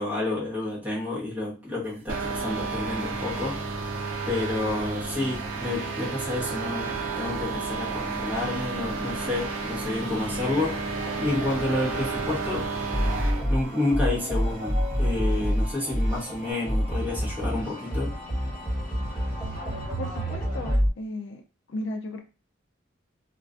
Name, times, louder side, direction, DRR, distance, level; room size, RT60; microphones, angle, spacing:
voice 1, 0.0-10.9 11.2-12.7 13.5-18.2, left 2 dB, 10° right, 0.9 m, -30 dB
sound 1, 2.1-20.8, left 1 dB, 45° right, 0.6 m, -45 dB
sound 2, 2.1-13.5, right 4 dB, 85° right, 0.5 m, -32 dB
sound 3, 4.9-20.9, equal, 20° left, 1.3 m, -30 dB
voice 2, 20.0-21.4 21.7-22.2, left 1 dB, 70° left, 0.4 m, -35 dB
2.4 x 2.2 x 2.4 m
head